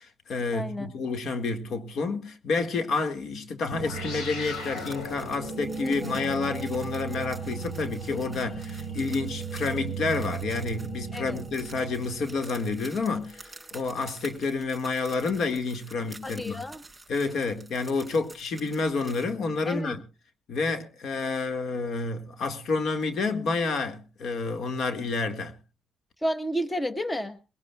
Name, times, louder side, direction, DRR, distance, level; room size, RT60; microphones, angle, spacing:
voice 1, 0.0-16.6 17.1-20.0 20.5-25.5, left 4 dB, 65° left, 1.7 m, -29 dB
voice 2, 0.5-0.9 5.8-6.2 11.1-11.4 16.2-16.8 19.7-20.0 26.2-27.4, equal, 15° left, 1.1 m, -31 dB
sound 1, 3.7-12.5, right 4 dB, 85° left, 4.1 m, -36 dB
sound 2, 4.4-19.3, right 2 dB, 10° right, 5.0 m, -49 dB
sound 3, 5.3-14.8, equal, 40° left, 6.0 m, -45 dB
21.0 x 17.5 x 2.3 m
cardioid pair, 90°, 0 cm